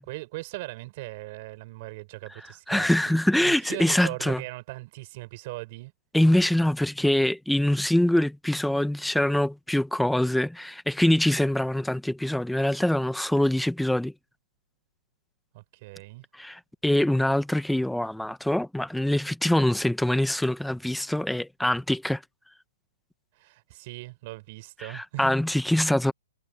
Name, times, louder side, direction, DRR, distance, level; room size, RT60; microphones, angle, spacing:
voice 1, 0.0-5.9 15.5-16.3 23.3-25.3, right 21 dB, 35° right, 5.0 m, -39 dB
voice 2, 2.7-4.4 6.1-14.1 16.3-22.2 24.8-26.1, left 1 dB, ahead, 0.8 m, -24 dB
hypercardioid pair, 160°, 0 cm